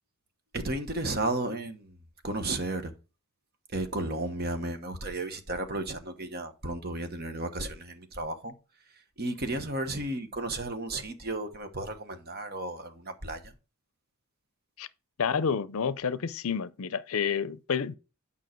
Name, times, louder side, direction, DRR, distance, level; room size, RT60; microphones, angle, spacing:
voice 1, 0.5-2.0 2.2-2.9 3.7-8.5 9.2-13.5, right 2 dB, 45° right, 1.2 m, -33 dB
voice 2, 15.2-17.9, left 6 dB, 70° left, 0.5 m, -29 dB
9.2 x 5.6 x 4.5 m
head